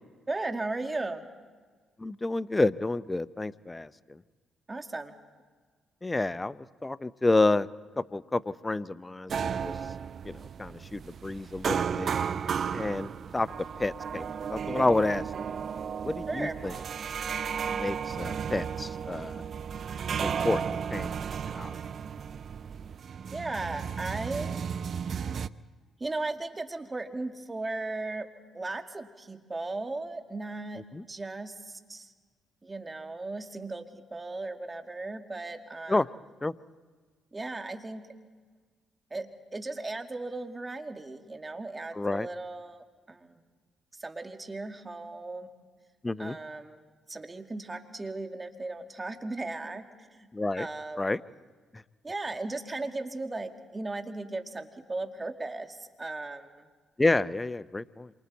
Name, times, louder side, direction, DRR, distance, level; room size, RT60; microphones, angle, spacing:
voice 1, 0.3-1.2 4.7-5.1 16.3-16.6 23.3-24.6 26.0-28.3 28.5-30.8 31.1-32.1 32.6-36.0 37.3-38.1 39.1-43.4 43.9-45.5 46.2-49.8 50.1-50.3 50.6-51.1 52.0-56.7, right 2 dB, 25° right, 5 dB, 2.0 m, -36 dB
voice 2, 2.0-4.2 6.0-7.7 8.0-9.7 10.2-12.1 12.7-13.5 13.8-15.2 16.0-16.7 17.6-19.4 20.2-21.8 30.9-31.0 35.9-36.1 36.4-36.5 41.9-42.3 46.0-46.4 50.3-50.7 51.0-51.2 57.0-58.1, left 2 dB, 20° left, 16 dB, 0.6 m, -29 dB
sound 1, 9.3-25.5, right 7 dB, 55° right, 0.6 m, -34 dB
27.5 x 24.5 x 4.1 m, 1.5 s
supercardioid pair, 65°, 0 cm